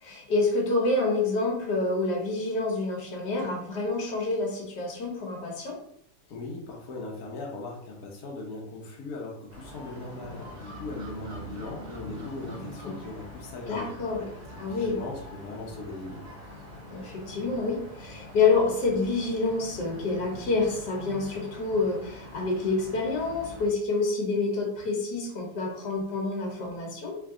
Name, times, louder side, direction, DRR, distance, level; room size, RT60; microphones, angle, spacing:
voice 1, 0.0-5.8 12.9-13.0 13.7-14.2 14.6-15.0 16.9-27.2, left 3 dB, 85° left, -1 dB, 1.7 m, -28 dB
voice 2, 6.3-13.9 14.2-16.3, left 3 dB, 65° left, -2 dB, 1.3 m, -39 dB
sound 1, 9.5-23.7, equal, 40° right, 0.6 m, -44 dB
3.8 x 3.4 x 3.7 m, 0.71 s
omnidirectional pair, 1.8 m